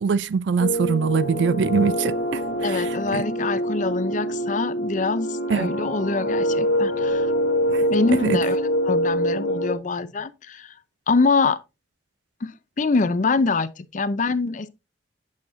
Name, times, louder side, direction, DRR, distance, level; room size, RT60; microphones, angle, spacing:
voice 1, 0.0-3.2 5.5-5.7 7.7-8.4, right 5 dB, 70° right, 0.4 m, -24 dB
sound 1, 0.6-9.8, equal, 75° left, 1.1 m, -25 dB
voice 2, 2.6-7.3 7.9-8.6 8.9-10.7 11.1-11.6 12.4-12.5 12.8-14.7, left 4 dB, 45° left, 0.5 m, -24 dB
8.5 x 6.5 x 2.5 m
head